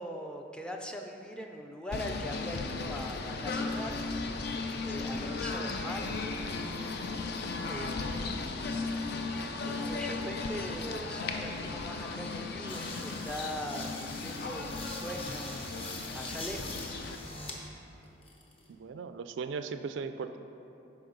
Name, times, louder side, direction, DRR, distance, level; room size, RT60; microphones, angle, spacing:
voice 1, 0.0-4.0 4.8-6.1 7.6-9.0 9.5-15.7 16.1-17.0 17.2-17.3, equal, 5° left, 2 dB, 0.4 m, -41 dB
Singing / Bird, 1.9-17.2, left 3 dB, 55° left, 0.5 m, -36 dB
sound 1, 12.7-17.6 18.0-18.7, left 2 dB, 30° left, 0.8 m, -44 dB
voice 2, 18.7-20.4, right 5 dB, 70° right, 9 dB, 0.3 m, -37 dB
8.7 x 5.8 x 3.9 m, 2.8 s
head